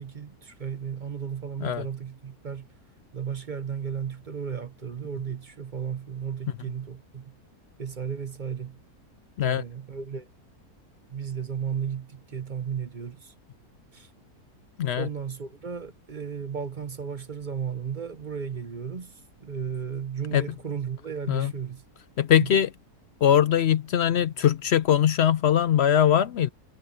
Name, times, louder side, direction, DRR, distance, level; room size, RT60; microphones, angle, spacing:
voice 1, 0.0-2.7 3.1-7.4 7.8-8.8 9.4-10.3 11.1-13.3 13.9-14.1 15.0-21.8 22.4-22.6, right 7 dB, 35° right, 0.9 m, -34 dB
voice 2, 22.2-22.7 23.2-26.5, left 10 dB, 70° left, 0.6 m, -21 dB
omnidirectional pair, 1.6 m